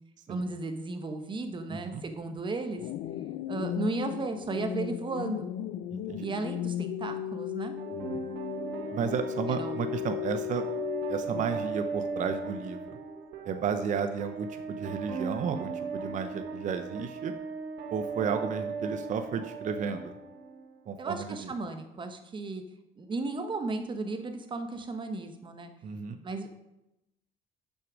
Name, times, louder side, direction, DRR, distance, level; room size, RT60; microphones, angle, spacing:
voice 1, 0.3-2.8 3.5-5.5 6.2-7.8 9.5-9.8 21.0-22.6 23.0-25.7 26.2-26.5, right 3 dB, 30° right, 7 dB, 1.0 m, -35 dB
voice 2, 1.7-2.0 5.9-6.3 7.9-8.2 8.9-10.6 11.1-13.0 13.4-17.3 17.9-20.1 20.9-21.5 25.8-26.2, right 6 dB, 45° right, 8 dB, 0.6 m, -33 dB
sound 1, 2.8-11.7, left 12 dB, 75° left, 0.4 m, -36 dB
sound 2, 7.8-20.8, right 4 dB, 85° right, 1.1 m, -38 dB
6.4 x 6.1 x 5.1 m, 0.93 s
cardioid pair, 110°, 17 cm